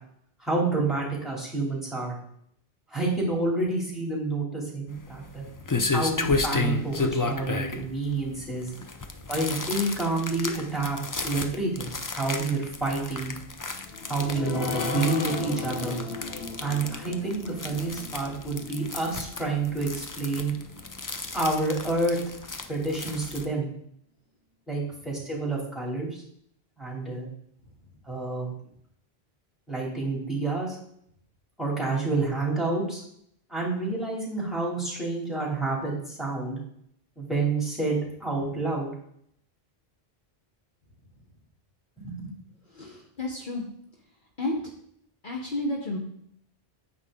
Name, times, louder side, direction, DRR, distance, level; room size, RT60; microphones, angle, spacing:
voice 1, 0.4-2.1 2.9-5.4 5.9-8.7 9.3-11.9 12.1-13.3 14.1-16.0 16.6-20.5 21.3-22.2 22.7-23.7 24.7-26.2 26.8-27.3 28.1-28.5 29.7-30.8 31.6-33.0 33.5-36.6 37.2-38.9 42.0-42.3, right 3 dB, ahead, -4 dB, 2.9 m, -29 dB
sound 1, 4.9-23.4, left 3 dB, 30° left, 0.4 m, -33 dB
sound 2, 13.8-20.8 21.3-21.4 21.7-21.8, left 4 dB, 70° left, 1.1 m, -37 dB
voice 2, 42.7-43.7 44.4-44.7 45.2-46.0, left 1 dB, 55° left, -1 dB, 1.3 m, -32 dB
9.5 x 7.0 x 3.7 m, 0.69 s
omnidirectional pair, 1.1 m